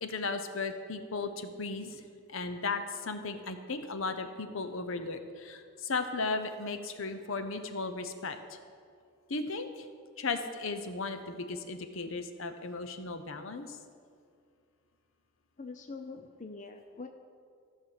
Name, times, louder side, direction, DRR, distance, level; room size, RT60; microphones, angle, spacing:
voice 1, 0.0-2.0 2.3-8.4 9.3-9.9 10.2-13.8, left 3 dB, 65° left, 8 dB, 0.8 m, -36 dB
voice 2, 15.6-17.1, left 3 dB, 35° left, 5 dB, 0.5 m, -44 dB
15.0 x 5.6 x 6.5 m, 2.3 s
head